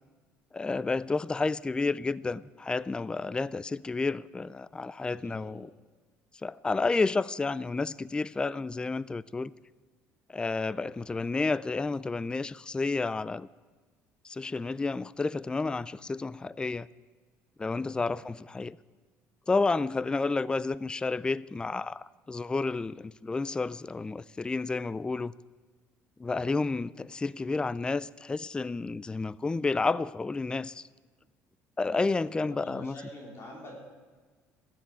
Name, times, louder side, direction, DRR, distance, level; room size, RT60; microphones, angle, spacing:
voice 1, 0.5-5.7 6.4-9.5 10.3-13.5 14.2-16.9 17.6-18.8 19.5-25.3 26.2-30.8 31.8-33.0, left 3 dB, 15° left, 0.4 m, -30 dB
voice 2, 5.0-5.6 17.9-18.1 31.8-33.7, left 1 dB, 45° left, 3.9 m, -46 dB
13.5 x 10.5 x 9.4 m
supercardioid pair, 90°, 6 cm